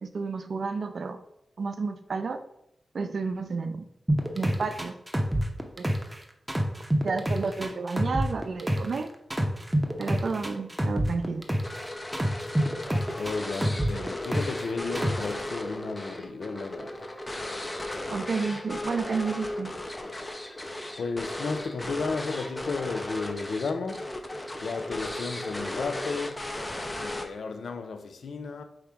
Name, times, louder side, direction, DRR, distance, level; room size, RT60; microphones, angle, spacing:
voice 1, 0.0-1.2 1.6-2.4 2.9-3.9 4.3-4.9 5.8-5.9 7.0-9.1 10.0-11.5 18.1-19.8, right 4 dB, 70° right, 0.4 m, -31 dB
sound 1, 4.1-6.2 6.5-9.0 9.3-11.8 12.1-14.6 15.0-15.3, right 1 dB, 15° right, 0.7 m, -26 dB
sound 2, 11.6-27.6, left 1 dB, 30° left, 0.6 m, -36 dB
voice 2, 13.2-17.1 21.0-24.1 24.6-26.4 26.9-28.6, left 4 dB, 80° left, 0.4 m, -33 dB
4.7 x 2.9 x 3.5 m
cardioid pair, 50°, 0 cm